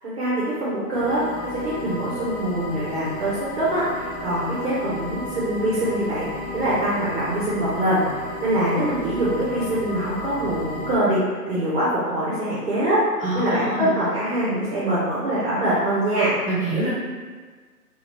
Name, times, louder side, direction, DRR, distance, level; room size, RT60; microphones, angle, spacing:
voice 1, 0.0-1.2 1.5-3.9 4.2-13.0 13.3-16.4, right 1 dB, 40° right, -9 dB, 0.9 m, -24 dB
sound 1, 0.9-10.9, left 1 dB, 40° left, 0.5 m, -33 dB
voice 2, 13.2-13.9 16.4-16.9, right 1 dB, 10° right, -16 dB, 1.4 m, -25 dB
2.7 x 2.4 x 3.2 m, 1.5 s
hypercardioid pair, 160°, 46 cm